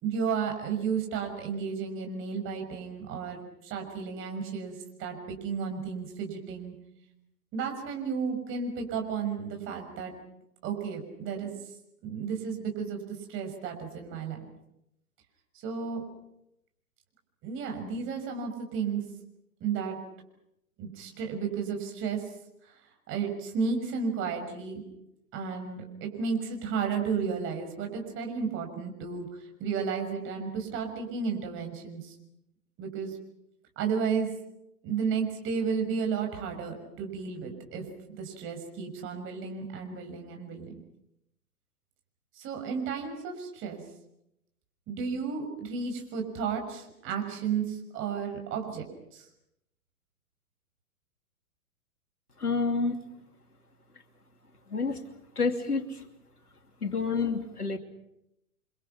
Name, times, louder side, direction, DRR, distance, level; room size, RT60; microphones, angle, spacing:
voice 1, 0.0-6.7 7.5-10.1 10.6-11.5 12.0-14.4 15.6-16.0 17.4-19.0 19.6-20.0 20.8-22.2 23.1-24.8 25.3-32.1 32.8-33.2 33.8-34.3 34.8-37.8 38.2-40.7 42.4-43.8 44.9-48.9 49.1-49.2, right 6 dB, 25° right, 4 dB, 6.2 m, -33 dB
voice 2, 52.4-53.0 54.7-55.0 55.4-56.1 56.8-57.8, left 4 dB, 85° left, 6 dB, 3.0 m, -28 dB
29.5 x 25.5 x 6.0 m, 0.84 s
figure-of-eight pair, 115°, 44 cm